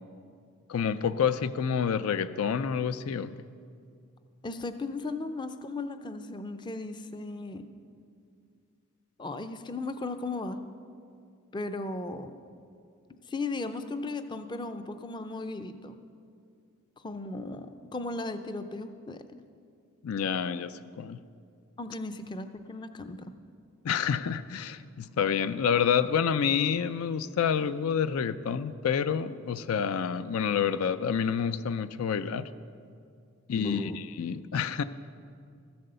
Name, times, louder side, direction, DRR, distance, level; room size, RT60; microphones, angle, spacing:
voice 1, 0.7-3.3 20.0-21.2 23.8-32.5 33.5-34.8, left 7 dB, 75° left, 13 dB, 0.4 m, -28 dB
voice 2, 4.4-7.7 9.2-10.6 11.5-12.3 13.3-16.0 17.0-19.2 21.8-23.3 33.5-34.0, left 2 dB, 20° left, 9 dB, 0.5 m, -36 dB
14.5 x 7.8 x 6.8 m, 2.3 s
head